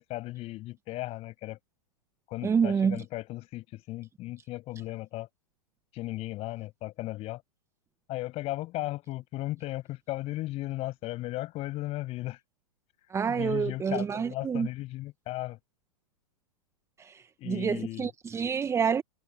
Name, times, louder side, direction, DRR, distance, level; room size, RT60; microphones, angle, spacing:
voice 1, 0.0-1.6 2.3-5.3 5.9-7.4 8.1-12.4 13.3-15.6 17.4-18.1, left 17 dB, 30° left, 6.6 m, -36 dB
voice 2, 2.4-3.0 13.1-14.7 17.0-19.0, right 6 dB, 15° right, 1.6 m, -28 dB
figure-of-eight pair, 110°, 20 cm